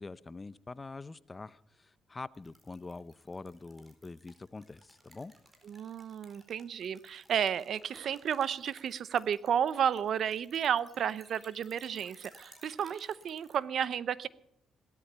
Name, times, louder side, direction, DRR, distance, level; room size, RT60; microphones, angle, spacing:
voice 1, 0.0-5.3, left 3 dB, 25° left, 18 dB, 0.6 m, -45 dB
sound 1, 2.3-13.6, right 1 dB, 20° right, 4.3 m, -59 dB
voice 2, 5.6-14.3, right 8 dB, 65° right, 18 dB, 0.7 m, -32 dB
17.0 x 13.5 x 5.5 m, 0.75 s
cardioid pair, 90°, 0 cm